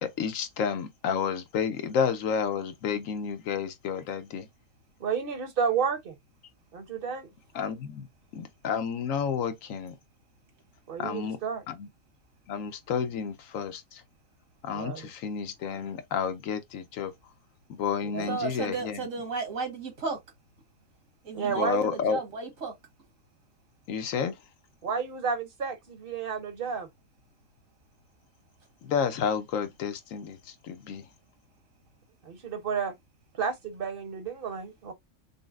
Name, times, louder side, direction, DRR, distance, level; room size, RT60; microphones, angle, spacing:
voice 1, 0.0-4.5 7.5-8.1 8.3-10.0 11.0-11.4 11.7-11.9 12.5-14.0 14.6-17.1 17.7-19.1 21.5-22.2 23.9-24.4 28.8-31.0, left 7 dB, 90° left, 1.1 m, -30 dB
voice 2, 5.0-6.1 6.7-7.3 10.9-11.6 14.7-15.1 18.1-18.4 21.3-22.0 24.8-26.9 32.2-32.9 33.4-34.9, right 6 dB, 50° right, 1.0 m, -31 dB
voice 3, 18.3-20.2 21.2-22.7, right 4 dB, 80° right, 2.0 m, -34 dB
5.5 x 2.1 x 2.4 m
omnidirectional pair, 1.4 m